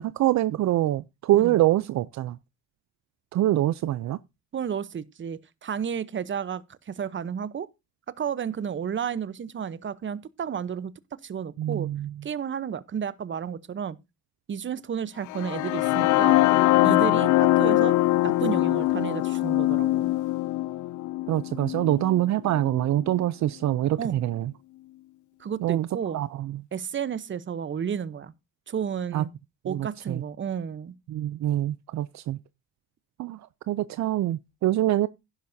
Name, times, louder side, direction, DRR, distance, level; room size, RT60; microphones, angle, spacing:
voice 1, 0.0-2.4 3.3-4.2 11.6-12.1 21.3-24.5 25.6-25.9 26.1-26.6 29.1-29.2 29.6-30.2 31.1-32.4 33.2-33.4 33.7-35.1, right 14 dB, 65° right, 0.5 m, -25 dB
voice 2, 4.5-7.7 8.2-10.9 11.2-11.9 12.2-14.0 14.5-16.4 16.8-18.0 18.2-20.1 24.0-24.2 25.4-26.2 26.7-28.3 28.7-29.3 29.6-30.9, right 7 dB, 40° right, 0.9 m, -32 dB
sound 1, 15.3-23.2, left 18 dB, 80° left, 0.5 m, -23 dB
11.0 x 11.0 x 2.7 m
cardioid pair, 90°, 30 cm